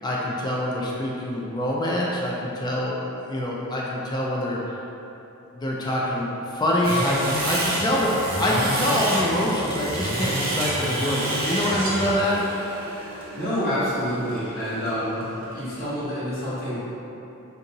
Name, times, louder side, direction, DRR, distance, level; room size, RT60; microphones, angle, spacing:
voice 1, 0.0-4.8 5.6-12.4, left 1 dB, 20° left, -4 dB, 0.3 m, -25 dB
sound 1, 6.8-16.0, right 1 dB, 45° right, 0.6 m, -29 dB
voice 2, 13.3-15.2 15.5-16.8, equal, 45° left, -12 dB, 1.3 m, -27 dB
3.8 x 2.7 x 2.7 m, 3.0 s
head